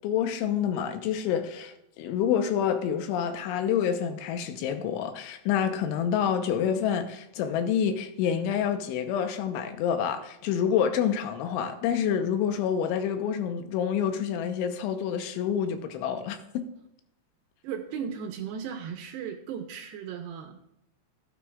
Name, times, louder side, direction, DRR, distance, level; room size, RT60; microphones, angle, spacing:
voice 1, 0.0-16.7, left 8 dB, 85° left, 3.2 m, -28 dB
voice 2, 17.6-20.6, right 7 dB, 80° right, 2.6 m, -36 dB
16.0 x 9.2 x 2.4 m
omnidirectional pair, 5.5 m